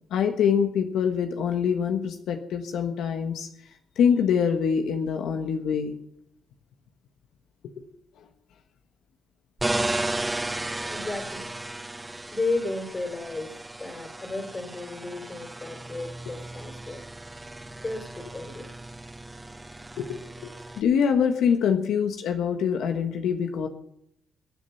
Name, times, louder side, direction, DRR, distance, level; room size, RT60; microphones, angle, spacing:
voice 1, 0.1-3.5 4.0-5.9 7.8-7.9 20.0-23.7, left 7 dB, 75° left, 5 dB, 1.4 m, -25 dB
sound 1, 9.6-20.8, right 2 dB, 10° right, 1.0 m, -34 dB
voice 2, 10.9-11.5 12.3-13.5 13.8-17.0 17.8-18.7, left 2 dB, 25° left, 7 dB, 3.4 m, -33 dB
22.5 x 7.6 x 5.7 m, 0.73 s
cardioid pair, 90°, 0 cm